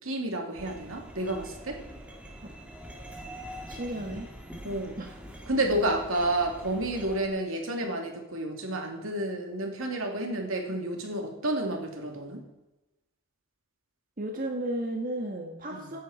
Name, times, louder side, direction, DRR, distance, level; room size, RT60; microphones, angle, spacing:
voice 1, 0.0-1.8 4.6-5.0 5.5-12.4 15.7-15.9, right 1 dB, 75° right, 3 dB, 2.6 m, -30 dB
sound 1, 0.6-7.3, equal, 5° right, 2.2 m, -44 dB
voice 2, 3.7-4.3 5.0-5.1 7.8-7.9 14.2-16.0, right 1 dB, 40° right, 2 dB, 1.5 m, -34 dB
16.0 x 10.5 x 4.2 m, 1.0 s
head